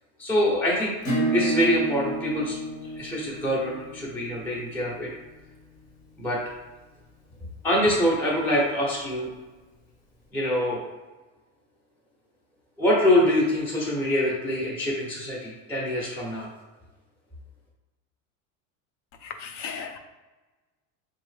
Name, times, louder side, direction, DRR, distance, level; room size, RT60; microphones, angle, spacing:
voice 1, 0.2-2.6 3.0-5.1 6.2-6.4 7.6-9.3 10.3-10.8 12.8-16.5, left 1 dB, 5° left, -5 dB, 0.5 m, -24 dB
Acoustic guitar / Strum, 1.0-6.3, right 2 dB, 90° left, 1.5 m, -31 dB
voice 2, 19.2-20.0, left 6 dB, 75° left, 6 dB, 0.6 m, -36 dB
3.8 x 2.7 x 3.2 m, 1.2 s
supercardioid pair, 140°, 38 cm